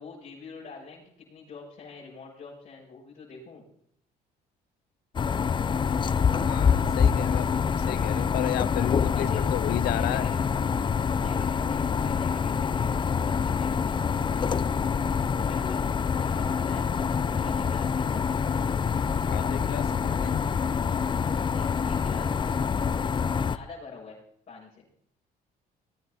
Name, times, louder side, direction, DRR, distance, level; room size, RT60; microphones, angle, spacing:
voice 1, 0.0-3.6 9.1-9.5 9.8-10.3 11.1-14.7 15.4-15.8 16.2-16.9 17.3-18.1 21.5-22.6 23.5-24.2 24.5-24.9, left 4 dB, 45° left, 7.8 m, -45 dB
sound 1, 5.1-23.6, left 6 dB, 30° left, 0.6 m, -26 dB
voice 2, 6.5-10.3 19.3-20.4, left 15 dB, 70° left, 0.6 m, -32 dB
sound 2, 8.0-18.3, right 3 dB, 40° right, 5.4 m, -49 dB
20.5 x 9.3 x 4.2 m
cardioid pair, 110°, 17 cm